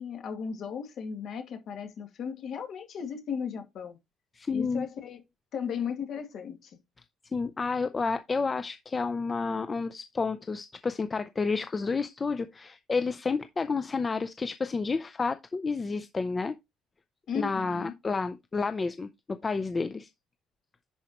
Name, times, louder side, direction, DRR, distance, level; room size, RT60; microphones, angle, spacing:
voice 1, 0.0-4.0 4.5-5.2 5.5-6.7 17.3-17.9, left 7 dB, 45° left, 2.1 m, -36 dB
voice 2, 4.3-4.9 7.3-16.6 17.3-20.1, left 4 dB, 20° left, 0.4 m, -30 dB
10.5 x 4.8 x 2.9 m
cardioid pair, 160°, 0 cm